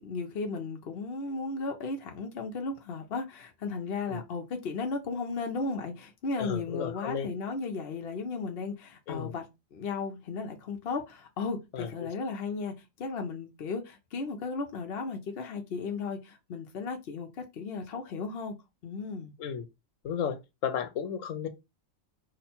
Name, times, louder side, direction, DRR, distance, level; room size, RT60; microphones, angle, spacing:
voice 1, 0.0-9.4 9.7-18.6 18.8-19.3, left 4 dB, 55° left, 0.9 m, -35 dB
voice 2, 6.4-7.3 9.1-9.3 11.7-12.1 19.4-19.7 20.0-21.5, left 7 dB, 75° left, 1.1 m, -34 dB
5.2 x 2.2 x 4.3 m
omnidirectional pair, 1.4 m